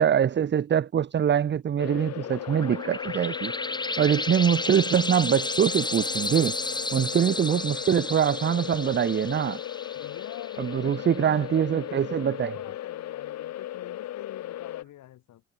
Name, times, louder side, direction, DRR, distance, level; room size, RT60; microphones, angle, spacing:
voice 1, 0.0-3.5 4.0-6.5 6.9-9.6 10.6-12.5, right 8 dB, 35° right, 0.7 m, -24 dB
sound 1, 1.8-14.8, left 13 dB, 60° left, 0.7 m, -37 dB
sound 2, 2.1-11.3, left 2 dB, 15° left, 3.2 m, -33 dB
voice 2, 9.9-15.4, left 13 dB, 80° left, 3.1 m, -46 dB
cardioid pair, 90°, 30 cm